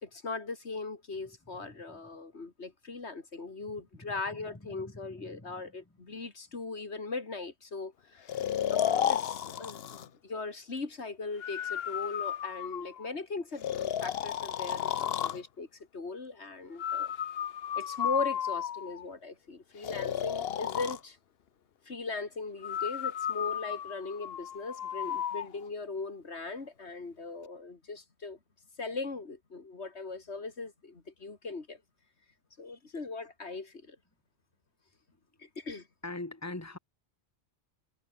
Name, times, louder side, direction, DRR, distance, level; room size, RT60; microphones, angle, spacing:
voice 1, 0.0-8.3 8.7-17.1 17.8-21.2 21.9-28.4 28.8-31.8 32.6-34.0 35.4-35.9, left 3 dB, 80° left, 2.8 m, -39 dB
voice 2, 4.7-5.7 8.4-8.8 15.3-15.4 17.4-17.5 32.7-32.8 36.0-36.8, left 2 dB, 15° left, 1.9 m, -43 dB
Breathing, 8.3-10.1 11.4-13.1 13.6-15.4 16.8-19.0 19.8-21.0 22.6-25.5, left 9 dB, 65° left, 0.9 m, -33 dB
omnidirectional pair, 1.1 m